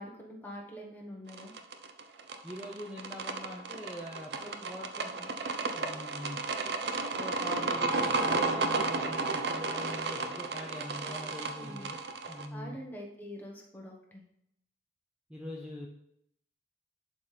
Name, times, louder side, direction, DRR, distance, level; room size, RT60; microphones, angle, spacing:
voice 1, 0.0-1.5 11.5-11.9 12.5-14.2, equal, 10° left, -2 dB, 1.3 m, -45 dB
sound 1, 1.3-12.5, right 3 dB, 65° right, 0.6 m, -33 dB
voice 2, 2.4-5.3 5.7-6.4 7.2-12.0 12.3-12.8 15.3-15.9, equal, 5° right, -2 dB, 0.6 m, -42 dB
11.0 x 4.2 x 3.4 m, 0.74 s
head